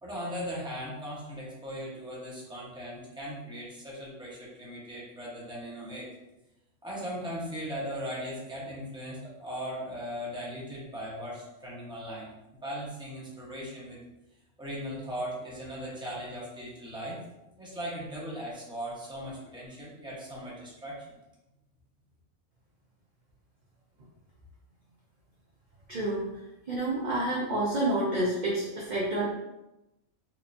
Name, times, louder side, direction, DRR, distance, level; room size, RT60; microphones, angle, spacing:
voice 1, 0.0-6.1 6.8-12.3 12.6-14.0 14.6-17.2 17.6-21.1, equal, 5° right, -6 dB, 0.9 m, -38 dB
voice 2, 25.9-26.3 26.7-29.3, right 1 dB, 50° right, -5 dB, 0.6 m, -28 dB
4.5 x 2.7 x 2.6 m, 0.95 s
omnidirectional pair, 1.4 m